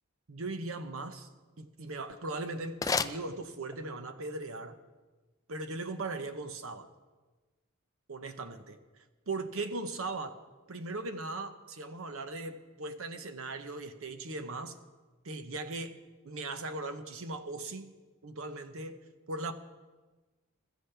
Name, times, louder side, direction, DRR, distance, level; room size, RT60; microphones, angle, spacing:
voice 1, 0.3-1.3 1.6-4.8 5.5-6.9 8.1-8.8 9.3-10.4 10.7-14.8 15.2-16.0 16.2-17.9 18.2-19.0 19.3-19.5, right 2 dB, 70° right, 9 dB, 0.9 m, -38 dB
sound 1, 1.9-4.0, left 5 dB, 15° left, 0.4 m, -36 dB
21.5 x 13.5 x 3.4 m, 1.3 s
head